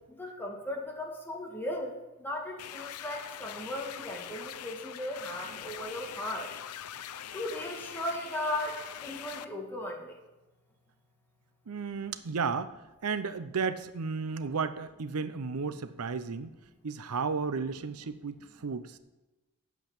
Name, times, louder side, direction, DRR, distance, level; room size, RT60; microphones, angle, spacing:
voice 1, 0.1-6.5 7.3-10.2, left 1 dB, 10° left, 0 dB, 2.0 m, -37 dB
sound 1, 2.6-9.4, left 10 dB, 85° left, 0.5 m, -43 dB
voice 2, 11.7-12.8 13.0-16.5 16.8-19.0, right 5 dB, 80° right, 12 dB, 0.6 m, -33 dB
8.2 x 7.9 x 8.7 m, 1.1 s
head